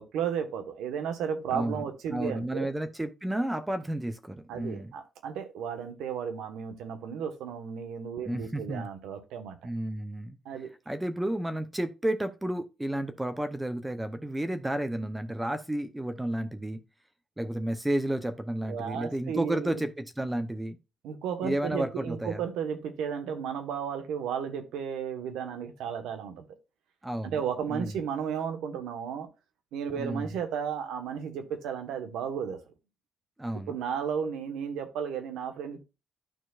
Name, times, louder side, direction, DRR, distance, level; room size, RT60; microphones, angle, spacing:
voice 1, 0.0-2.7 4.5-9.6 10.4-10.7 18.6-19.9 21.0-26.5 27.2-29.3 29.7-32.6 33.7-35.8, right 7 dB, 90° right, 1.3 m, -34 dB
voice 2, 1.5-4.9 8.2-8.9 9.6-10.4 10.9-16.8 17.4-20.8 21.4-22.4 27.0-27.4 27.7-28.0 29.9-30.3 33.4-33.8, right 1 dB, 10° right, 0.8 m, -32 dB
12.5 x 4.5 x 2.5 m
cardioid pair, 90°, 0 cm